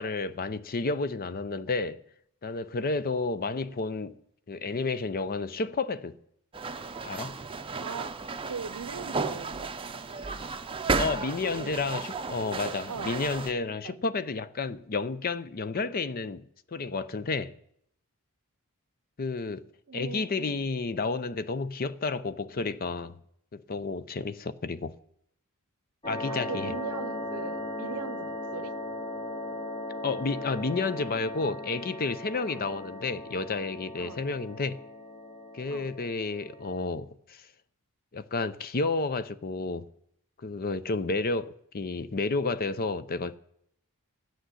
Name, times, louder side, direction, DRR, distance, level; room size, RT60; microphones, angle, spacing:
voice 1, 0.0-2.0 2.4-4.2 4.5-6.2 7.0-7.4 11.0-16.4 16.7-17.5 19.2-19.7 19.9-23.2 23.5-25.0 26.1-26.7 30.0-34.8 35.5-37.5 38.1-39.9 40.4-43.4, left 3 dB, 40° left, 0.6 m, -31 dB
sound 1, 6.5-13.5, right 4 dB, 25° right, 0.6 m, -34 dB
voice 2, 7.8-8.1 8.5-9.7 11.4-11.8 12.9-13.2 13.8-14.0 19.9-20.6 26.3-28.7 32.5-32.6 34.0-34.2 35.7-35.9, right 5 dB, 90° right, 0.6 m, -39 dB
sound 2, 26.0-36.9, left 1 dB, 25° left, 1.6 m, -38 dB
12.5 x 6.5 x 9.5 m
head